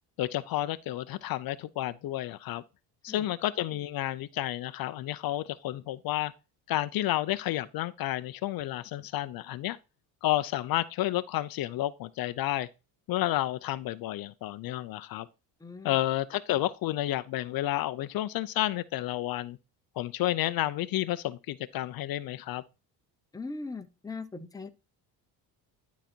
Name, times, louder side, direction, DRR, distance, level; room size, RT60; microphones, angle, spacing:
voice 1, 0.2-2.6 3.0-6.3 6.7-9.8 10.2-12.7 13.1-15.3 15.8-19.6 20.0-22.6, left 14 dB, 60° left, 0.6 m, -31 dB
voice 2, 15.6-16.0 23.3-24.7, left 3 dB, 10° left, 0.8 m, -40 dB
11.5 x 4.1 x 4.4 m
cardioid pair, 125°, 40 cm